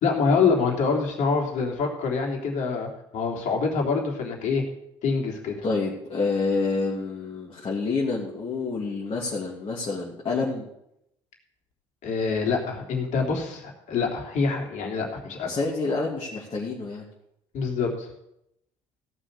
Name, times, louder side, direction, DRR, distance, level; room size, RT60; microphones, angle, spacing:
voice 1, 0.0-4.6 5.0-5.5 12.0-15.5 17.5-18.1, left 4 dB, 60° left, 0 dB, 3.3 m, -25 dB
voice 2, 5.6-10.7 15.5-17.1, left 3 dB, 40° left, -3 dB, 2.9 m, -28 dB
16.5 x 6.3 x 6.8 m, 0.81 s
hypercardioid pair, 60°, 14 cm